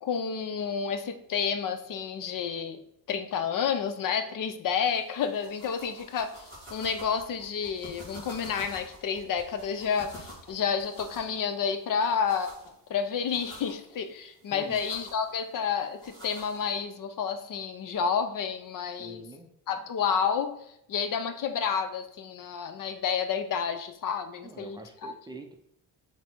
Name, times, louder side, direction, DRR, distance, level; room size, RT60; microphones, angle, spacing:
voice 1, 0.0-2.8 3.1-6.4 6.7-12.5 12.9-19.2 19.7-20.5 20.9-25.1, left 6 dB, 55° left, 10 dB, 0.7 m, -30 dB
sound 1, 4.9-16.8, equal, 10° left, 2.2 m, -49 dB
voice 2, 14.5-14.8 19.0-19.5 24.4-25.5, right 2 dB, 10° right, 3 dB, 0.5 m, -45 dB
7.4 x 3.0 x 4.5 m, 0.75 s
cardioid pair, 145°, 39 cm